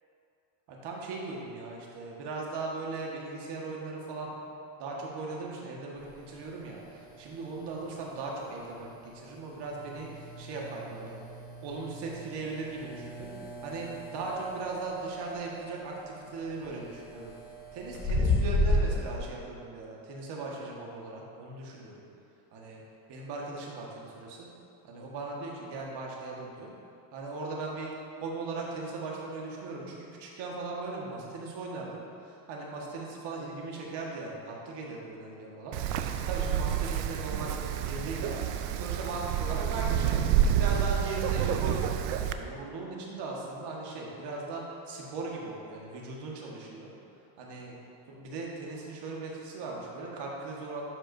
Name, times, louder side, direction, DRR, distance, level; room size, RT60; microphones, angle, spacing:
voice 1, 0.7-4.4 4.8-11.2 11.6-13.3 13.6-17.3 17.7-22.0 22.5-22.8 23.1-24.5 24.8-26.7 27.1-27.9 28.2-38.5 38.8-40.2 40.5-46.9 47.4-47.7 48.1-50.9, right 3 dB, 55° right, -2 dB, 1.6 m, -38 dB
sound 1, 6.0-19.2, left 2 dB, 75° left, 1.5 m, -35 dB
Wind, 35.7-42.3, right 9 dB, 85° right, 0.6 m, -29 dB
11.5 x 5.1 x 2.7 m, 2.7 s
supercardioid pair, 105°, 49 cm